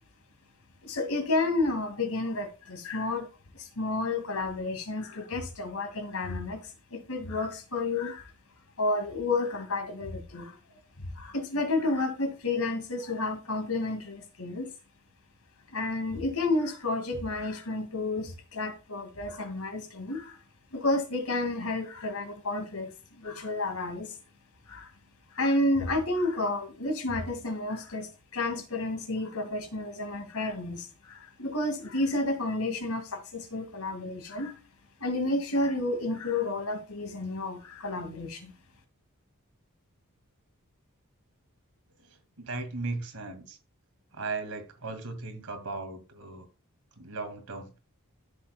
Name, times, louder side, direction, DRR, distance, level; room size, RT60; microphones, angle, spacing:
voice 1, 0.8-3.3 3.5-6.6 6.9-8.3 8.8-10.6 11.2-14.7 15.7-20.4 20.7-22.9 23.2-24.1 24.7-24.9 25.3-34.5 35.0-38.5, left 2 dB, 75° left, 2.2 m, -31 dB
voice 2, 42.0-43.6 44.1-46.5 47.0-47.8, right 3 dB, 85° right, 2.2 m, -37 dB
13.0 x 7.2 x 2.3 m
head